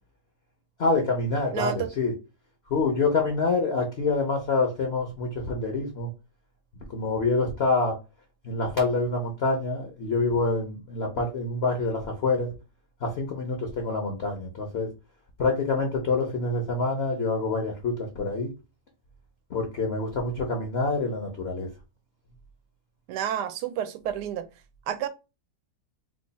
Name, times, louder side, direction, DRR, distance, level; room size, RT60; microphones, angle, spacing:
voice 1, 0.8-2.1 2.7-6.1 6.9-8.0 8.4-12.5 13.0-14.9 15.4-18.5 19.5-21.7, left 3 dB, 55° left, 0.7 m, -26 dB
voice 2, 1.5-1.9 23.1-24.5 24.9-25.1, right 10 dB, 75° right, 1.1 m, -30 dB
3.1 x 2.3 x 3.9 m
omnidirectional pair, 1.8 m